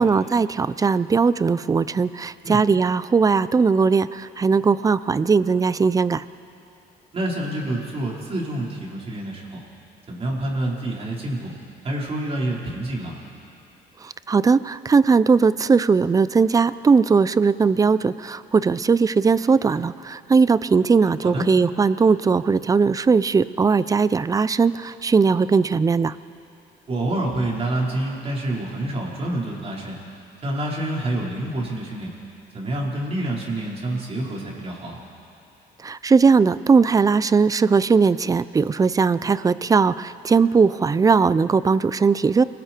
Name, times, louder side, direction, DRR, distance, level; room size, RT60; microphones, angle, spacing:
voice 1, 0.0-6.2 14.0-26.1 35.8-42.4, right 5 dB, 20° right, 16 dB, 0.5 m, -19 dB
voice 2, 7.1-9.6 10.1-11.5 11.8-13.1 21.2-21.4 26.9-30.0 30.4-32.1 32.5-35.0, right 1 dB, 35° right, -3 dB, 4.6 m, -27 dB
29.0 x 20.0 x 4.6 m, 2.7 s
cardioid pair, 110°, 17 cm